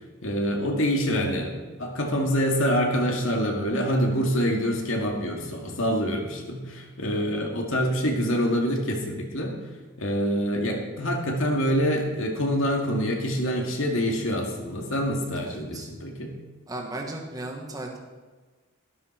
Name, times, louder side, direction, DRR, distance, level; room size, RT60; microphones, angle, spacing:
voice 1, 0.2-9.5 10.0-16.3, equal, 70° left, 1 dB, 2.2 m, -26 dB
voice 2, 15.4-15.9 16.7-18.0, right 2 dB, 20° right, 0 dB, 1.6 m, -36 dB
12.5 x 11.5 x 4.5 m, 1.3 s
head